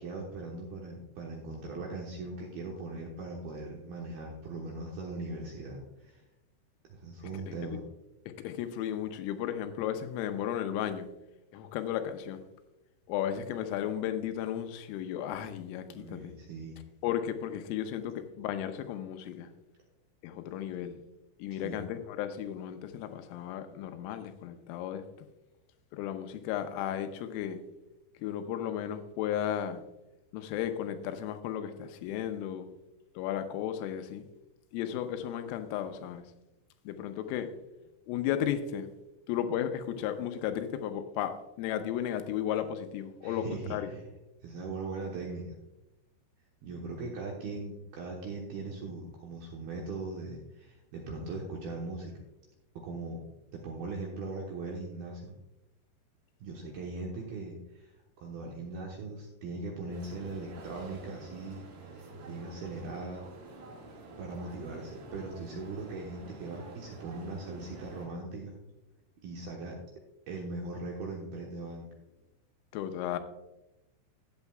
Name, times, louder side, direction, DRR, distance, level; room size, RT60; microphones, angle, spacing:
voice 1, 0.0-6.2 6.9-7.8 15.8-16.8 21.6-21.8 43.2-44.0 44.4-45.6 46.6-52.1 52.8-53.2 53.5-55.3 56.4-63.2 64.2-68.6 69.2-69.8 70.3-71.9, right 3 dB, 75° right, -2 dB, 2.3 m, -40 dB
voice 2, 7.5-7.8 8.4-11.1 11.5-12.4 13.1-16.4 17.0-19.5 20.2-21.0 21.4-25.1 25.9-27.6 28.2-29.8 30.3-32.7 33.2-34.2 34.7-36.3 36.9-37.5 38.1-38.9 39.3-43.9 72.7-73.2, left 10 dB, 85° left, 8 dB, 3.3 m, -34 dB
sound 1, 59.9-68.1, right 2 dB, 60° right, 3.3 m, -48 dB
13.5 x 9.1 x 2.3 m, 0.94 s
omnidirectional pair, 5.9 m